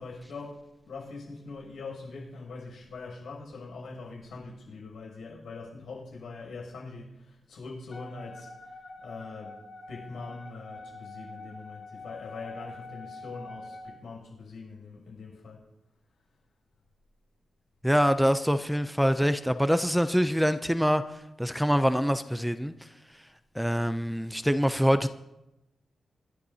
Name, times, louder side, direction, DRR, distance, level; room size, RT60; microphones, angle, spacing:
voice 1, 0.0-15.6, left 3 dB, 85° left, -2 dB, 6.9 m, -43 dB
Wind instrument woodwind instrument, 7.9-14.0, left 2 dB, 50° left, 4.2 m, -45 dB
voice 2, 17.8-21.0 21.4-22.7 23.6-25.1, equal, ahead, 10 dB, 0.4 m, -24 dB
27.0 x 12.0 x 2.8 m, 0.94 s
wide cardioid pair, 135°, 0 cm